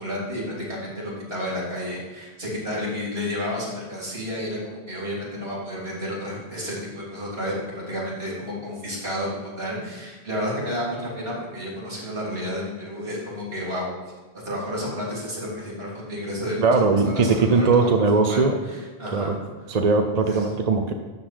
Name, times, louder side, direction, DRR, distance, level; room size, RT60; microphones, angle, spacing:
voice 1, 0.0-13.9 14.3-16.7 17.0-19.4 20.2-20.5, equal, 75° right, -5 dB, 3.8 m, -31 dB
voice 2, 16.6-18.6 19.1-19.4 19.7-20.9, right 4 dB, 45° right, 5 dB, 0.8 m, -20 dB
12.5 x 4.2 x 7.8 m, 1.3 s
omnidirectional pair, 1.0 m